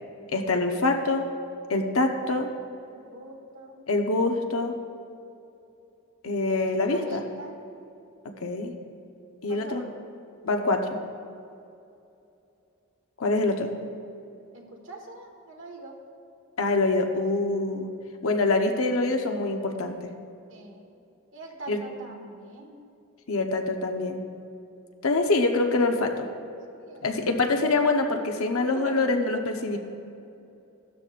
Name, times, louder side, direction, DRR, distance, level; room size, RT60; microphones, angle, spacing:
voice 1, 0.3-1.3 1.7-2.5 3.9-4.7 6.2-7.2 8.4-8.7 9.4-9.8 10.4-11.0 13.2-13.7 16.6-17.9 18.2-20.1 21.7-21.8 23.3-24.2 25.0-26.3 27.0-29.8, left 2 dB, 70° left, 3 dB, 0.9 m, -25 dB
voice 2, 2.9-3.8 6.9-7.6 9.5-10.0 14.5-15.9 20.5-20.9 21.3-22.9 26.8-27.3 28.3-28.9, right 2 dB, 60° right, 1 dB, 1.5 m, -43 dB
15.5 x 12.5 x 2.5 m, 2.7 s
head